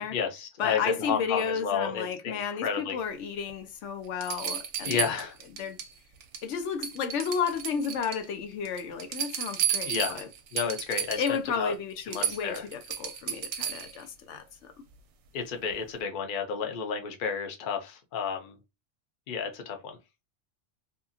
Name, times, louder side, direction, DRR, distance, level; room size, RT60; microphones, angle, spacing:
voice 1, 0.0-3.0 4.8-5.4 9.8-10.1 10.5-11.2 11.6-11.7 12.1-12.6 15.3-18.6 19.3-20.0, left 6 dB, 50° left, 0.7 m, -31 dB
voice 2, 0.6-5.1 5.6-5.8 6.4-10.3 11.2-14.7, left 6 dB, 80° left, 0.9 m, -32 dB
sound 1, 3.5-3.6 4.2-5.9 6.2-6.6 6.8-8.3 8.7-11.4 11.7-11.8 12.1-14.0 15.7-15.8, right 9 dB, 75° right, 0.9 m, -33 dB
2.8 x 2.3 x 2.5 m
omnidirectional pair, 1.2 m